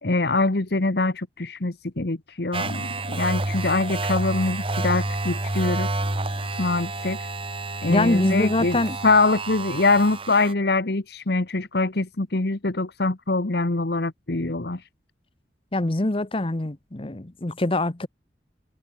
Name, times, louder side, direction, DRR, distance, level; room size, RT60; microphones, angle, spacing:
voice 1, 0.0-6.0 6.6-7.2 7.8-14.8, left 3 dB, 60° left, 1.3 m, -24 dB
sound 1, 2.5-10.5, right 2 dB, 30° right, 2.2 m, -29 dB
voice 2, 7.9-9.0 15.7-18.1, left 2 dB, 30° left, 1.0 m, -24 dB
head